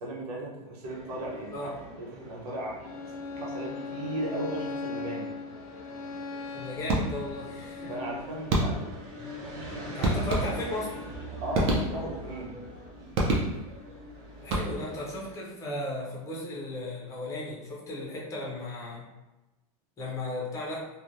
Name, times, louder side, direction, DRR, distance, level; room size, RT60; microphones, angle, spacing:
voice 1, 0.0-1.7 2.0-5.3 7.9-9.0 9.4-10.1 11.4-12.6, right 1 dB, 85° right, -2 dB, 0.9 m, -37 dB
sound 1, 0.8-15.3, equal, 50° right, 1.3 m, -44 dB
Bowed string instrument, 2.8-8.3, left 4 dB, 65° left, 0.5 m, -39 dB
voice 2, 6.5-7.9 9.7-10.9 11.7-11.8 14.4-19.1 20.0-20.9, left 1 dB, 15° left, -3 dB, 0.6 m, -36 dB
sound 2, 6.9-7.4 8.5-9.1 10.0-10.9 11.5-12.3 13.1-13.9 14.4-15.1, right 1 dB, 30° right, 0.5 m, -28 dB
3.2 x 2.1 x 2.6 m, 1.1 s
supercardioid pair, 160°, 20 cm